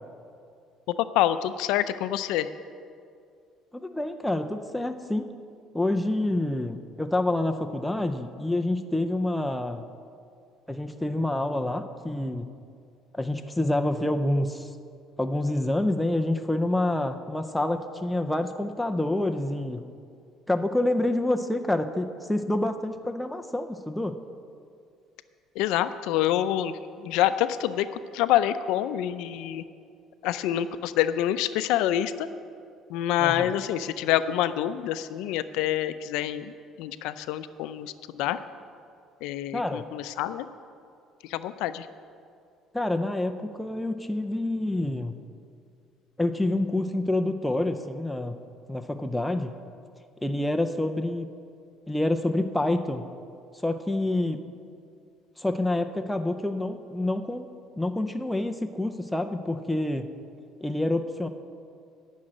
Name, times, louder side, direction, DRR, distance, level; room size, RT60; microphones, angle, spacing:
voice 1, 1.0-2.5 25.6-29.6 30.2-32.3 32.9-36.5 36.8-38.4 39.2-40.5 41.2-41.9, left 12 dB, 80° left, 12 dB, 0.4 m, -27 dB
voice 2, 3.7-5.3 5.7-9.8 10.7-12.5 13.1-14.7 15.2-19.8 20.5-24.2 33.2-33.6 39.5-39.8 42.7-45.2 46.2-48.3 48.7-49.5 50.2-51.3 51.9-53.1 53.5-54.4 55.4-57.5 57.8-60.1 60.6-61.3, left 1 dB, 5° left, 5 dB, 0.4 m, -27 dB
10.0 x 6.3 x 8.8 m, 2.4 s
cardioid pair, 175°, 0 cm